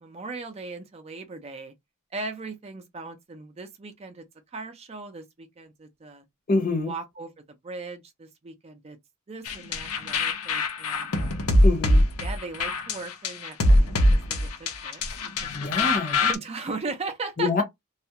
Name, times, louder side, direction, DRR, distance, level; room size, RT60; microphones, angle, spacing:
voice 1, 0.0-1.7 2.1-4.2 4.5-6.2 6.8-7.3 7.6-9.0 9.3-11.4 12.2-15.0 15.4-15.5 15.8-17.6, right 3 dB, 30° right, 0.5 m, -38 dB
voice 2, 6.5-6.9 11.6-12.0 15.5-16.2 17.4-17.6, left 3 dB, 40° left, 0.8 m, -25 dB
sound 1, 9.5-16.4, left 1 dB, 80° left, 0.6 m, -23 dB
2.3 x 2.1 x 2.8 m
head